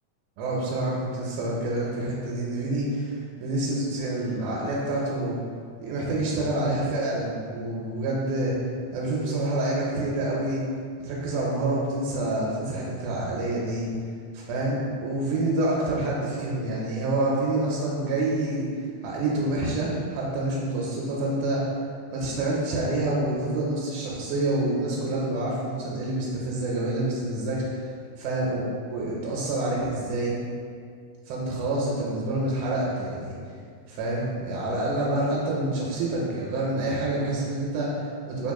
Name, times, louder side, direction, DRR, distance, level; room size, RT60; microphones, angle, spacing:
voice 1, 0.4-5.4 5.8-8.5 8.9-10.6 11.0-13.9 14.3-18.7 19.0-21.7 22.1-27.9 28.2-30.4 31.3-33.4 33.9-38.5, right 2 dB, 85° right, -4 dB, 2.0 m, -27 dB
4.0 x 3.5 x 2.3 m, 2.2 s
omnidirectional pair, 3.4 m